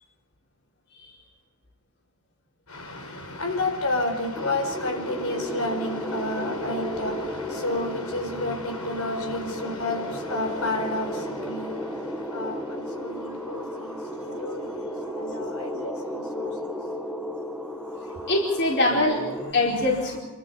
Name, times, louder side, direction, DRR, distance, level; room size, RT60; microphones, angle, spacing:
voice 1, 2.7-14.9 15.2-16.8, left 2 dB, 85° left, 4.7 m, -31 dB
sound 1, 4.3-19.5, equal, ahead, 1.2 m, -34 dB
voice 2, 18.2-20.2, left 2 dB, 55° left, 4.6 m, -24 dB
28.0 x 13.5 x 8.4 m
head